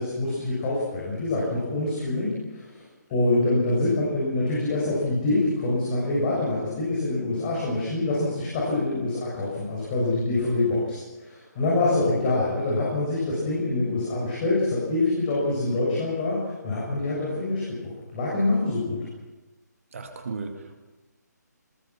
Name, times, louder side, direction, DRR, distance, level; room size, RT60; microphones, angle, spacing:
voice 1, 0.0-19.0, left 2 dB, 25° left, -5 dB, 6.9 m, -25 dB
voice 2, 19.9-20.8, right 4 dB, 50° right, 4 dB, 2.5 m, -35 dB
25.0 x 20.5 x 6.0 m, 1.1 s
figure-of-eight pair, 145°, 10 cm